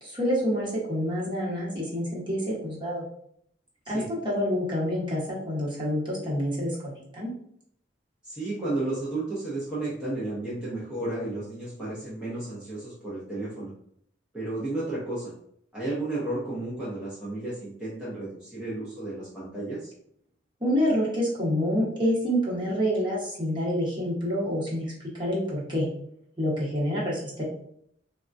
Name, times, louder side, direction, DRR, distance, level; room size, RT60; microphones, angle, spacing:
voice 1, 0.0-3.1 3.9-7.3 20.6-25.9 26.4-27.4, equal, 25° right, -6 dB, 1.2 m, -27 dB
voice 2, 8.2-13.7 14.3-15.3 15.7-19.9, right 2 dB, 5° right, -10 dB, 0.7 m, -33 dB
3.5 x 2.3 x 2.6 m, 0.69 s
head